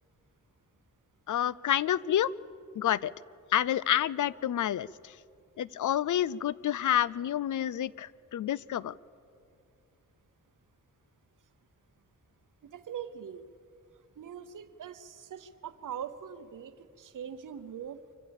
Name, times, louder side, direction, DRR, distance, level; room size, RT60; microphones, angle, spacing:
voice 1, 1.3-2.3 2.7-3.1 3.5-5.2 5.6-8.9, left 11 dB, 70° left, 21 dB, 0.5 m, -29 dB
voice 2, 12.6-13.5 14.2-18.0, right 8 dB, 75° right, 12 dB, 0.8 m, -42 dB
25.5 x 16.0 x 7.1 m, 2.5 s
cardioid pair, 70°, 31 cm